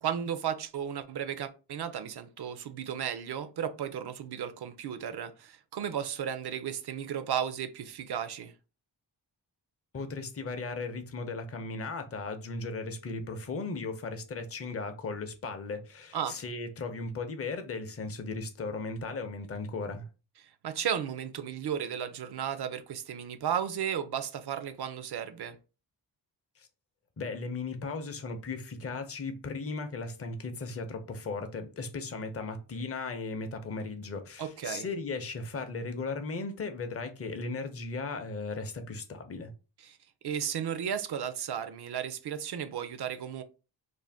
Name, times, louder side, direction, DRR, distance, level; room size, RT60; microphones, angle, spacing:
voice 1, 0.0-8.5 16.1-16.4 20.4-25.6 34.4-34.9 39.8-40.0 40.2-43.4, right 8 dB, 60° right, 0.5 m, -34 dB
voice 2, 9.9-20.1 26.6-26.7 27.2-39.5, left 3 dB, 30° left, 0.5 m, -36 dB
2.5 x 2.1 x 3.3 m
cardioid pair, 60°, 46 cm